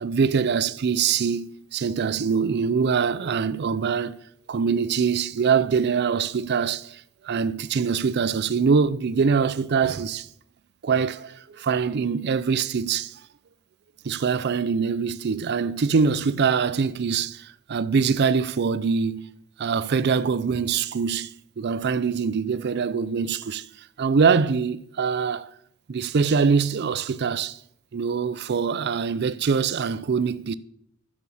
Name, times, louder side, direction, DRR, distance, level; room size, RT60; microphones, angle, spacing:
voice 1, 0.0-4.2 4.5-10.3 10.8-13.2 14.0-19.3 19.6-21.3 21.6-25.5 25.9-27.6 27.9-30.5, right 5 dB, 50° right, 0.4 m, -24 dB
11.0 x 6.2 x 6.9 m
head